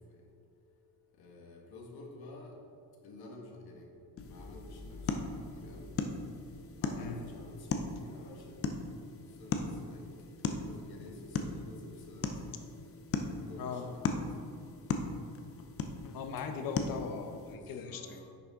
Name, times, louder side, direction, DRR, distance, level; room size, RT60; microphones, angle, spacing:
voice 1, 1.2-2.5 3.0-3.9 4.3-5.9 6.8-7.7 8.0-8.7 9.4-10.0 10.5-12.2 13.2-14.2 16.6-16.9 17.4-18.3, left 2 dB, 90° left, 0 dB, 1.7 m, -50 dB
sound 1, 4.2-17.6, left 4 dB, 40° left, 0.6 m, -38 dB
voice 2, 13.6-13.9 16.0-18.2, left 6 dB, 70° left, 5 dB, 0.9 m, -39 dB
10.0 x 6.4 x 3.7 m, 2.4 s
cardioid pair, 155°, 36 cm